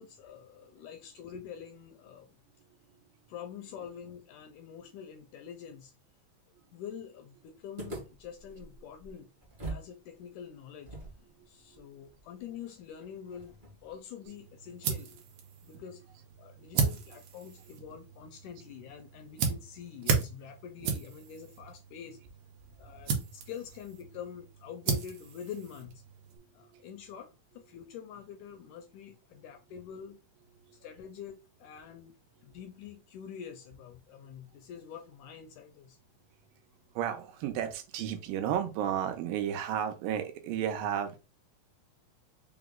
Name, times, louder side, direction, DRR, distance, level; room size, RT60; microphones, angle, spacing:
voice 1, 0.0-2.4 3.3-5.9 6.7-9.3 9.6-15.2 15.6-16.0 16.4-22.2 22.8-26.0 26.5-30.2 30.7-32.2 32.4-36.0, left 8 dB, 80° left, 1.8 m, -46 dB
sound 1, 7.8-9.9 10.2-10.3 10.8-14.0, right 2 dB, 40° right, 0.7 m, -45 dB
sound 2, 14.3-26.4, right 5 dB, 70° right, 1.8 m, -36 dB
voice 2, 37.0-41.2, right 9 dB, 90° right, 2.4 m, -33 dB
5.6 x 2.0 x 3.6 m
omnidirectional pair, 4.0 m